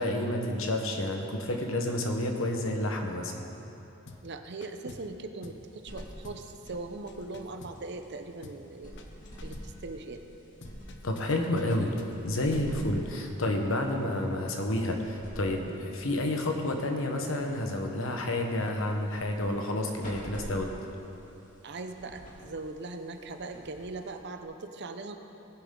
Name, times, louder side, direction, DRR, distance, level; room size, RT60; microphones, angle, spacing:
voice 1, 0.0-3.4 11.0-11.9 12.2-20.7, left 1 dB, 70° left, 3 dB, 1.1 m, -30 dB
sound 1, 4.1-4.3 4.6-5.2 5.4-5.7 6.0-8.1 8.4-8.7 9.0-9.8 10.6-12.8, left 2 dB, 55° left, 0.7 m, -49 dB
voice 2, 4.2-9.0 9.4-10.2 21.6-25.2, right 3 dB, 55° right, 6 dB, 0.7 m, -40 dB
sound 2, 5.5-24.4, equal, 40° left, 2.3 m, -48 dB
19.0 x 7.0 x 3.8 m, 2.9 s
head